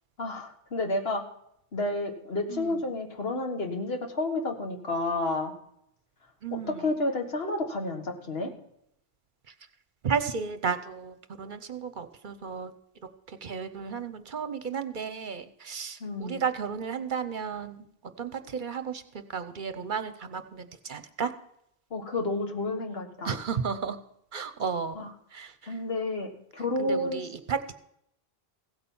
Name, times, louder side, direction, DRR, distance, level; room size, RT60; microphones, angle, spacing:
voice 1, 0.2-1.2 1.7-5.5 6.5-8.5 16.0-16.4 21.9-23.4 25.0-25.1 25.7-27.2, left 2 dB, 75° left, 4 dB, 1.7 m, -30 dB
voice 2, 6.4-6.8 10.0-12.7 13.3-17.9 18.2-19.0 19.3-21.3 23.2-24.0 24.3-25.7 26.8-27.7, right 6 dB, 55° right, 11 dB, 0.9 m, -33 dB
16.0 x 8.7 x 5.5 m, 0.75 s
omnidirectional pair, 1.0 m